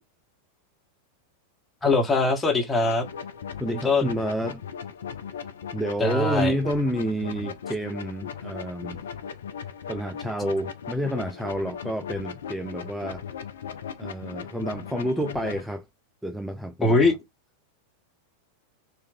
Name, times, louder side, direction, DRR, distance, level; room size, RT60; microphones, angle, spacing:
voice 1, 1.8-3.1 3.8-4.1 6.0-6.5 16.8-17.1, left 3 dB, 15° left, 1.2 m, -21 dB
sound 1, 2.8-15.6, left 7 dB, 65° left, 0.5 m, -38 dB
voice 2, 3.6-4.6 5.7-9.0 9.9-13.2 14.0-15.9 16.2-17.1, right 1 dB, 5° right, 0.4 m, -29 dB
4.5 x 2.5 x 2.7 m
figure-of-eight pair, 90°, 0 cm